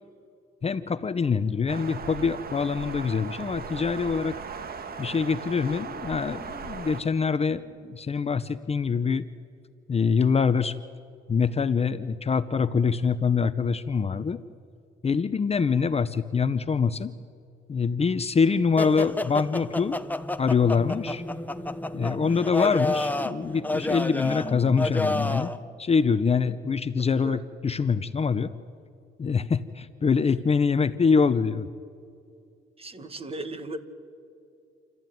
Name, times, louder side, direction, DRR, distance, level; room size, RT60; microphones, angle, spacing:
voice 1, 0.6-4.4 5.0-9.3 9.9-10.7 11.3-14.4 15.0-17.1 17.7-20.0 20.4-21.2 21.9-25.5 25.8-28.5 29.2-31.7, left 5 dB, 30° left, 12 dB, 0.7 m, -24 dB
sound 1, 1.7-7.0, right 5 dB, 50° right, 1.6 m, -38 dB
sound 2, 18.8-25.6, left 2 dB, 10° left, 1.0 m, -30 dB
voice 2, 32.8-33.8, right 2 dB, 30° right, 9 dB, 1.8 m, -36 dB
28.0 x 14.0 x 9.3 m, 2.5 s
cardioid pair, 90°, 20 cm